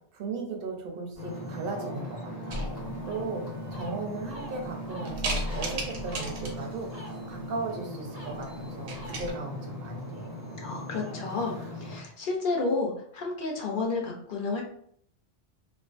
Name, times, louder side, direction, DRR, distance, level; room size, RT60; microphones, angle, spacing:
voice 1, 0.1-2.6 3.1-3.4 3.7-10.3, right 4 dB, 60° right, 2 dB, 0.7 m, -36 dB
Ocean, 1.1-12.0, equal, 40° left, 0.9 m, -39 dB
sound 1, 2.5-3.1 3.7-3.8 4.3-4.7 5.0-6.8 8.2-8.4 8.7-9.3, right 1 dB, 80° right, 1.0 m, -34 dB
voice 2, 10.6-14.6, left 3 dB, 60° left, 0 dB, 0.6 m, -31 dB
2.4 x 2.2 x 2.4 m, 0.65 s
omnidirectional pair, 1.2 m